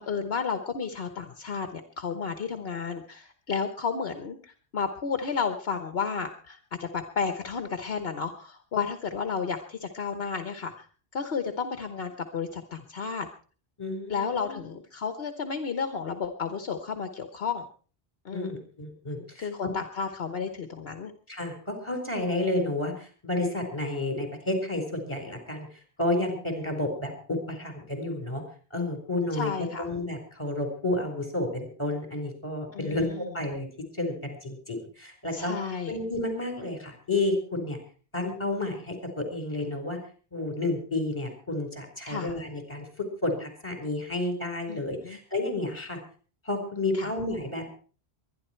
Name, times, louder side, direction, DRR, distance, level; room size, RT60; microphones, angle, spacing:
voice 1, 0.0-10.9 11.1-13.3 14.1-17.6 18.2-18.5 19.3-21.1 29.3-29.9 32.7-33.3 35.3-36.0 42.1-42.4 44.7-45.2 46.9-47.1, left 5 dB, 65° left, 8 dB, 1.3 m, -32 dB
voice 2, 13.8-14.6 18.3-19.5 21.3-25.7 26.0-28.4 28.7-29.5 29.8-33.7 33.9-34.1 34.4-35.5 35.9-37.8 38.1-40.0 40.3-46.0 46.4-47.7, left 2 dB, 25° left, 4 dB, 4.6 m, -31 dB
23.0 x 10.5 x 4.5 m, 0.41 s
omnidirectional pair, 1.1 m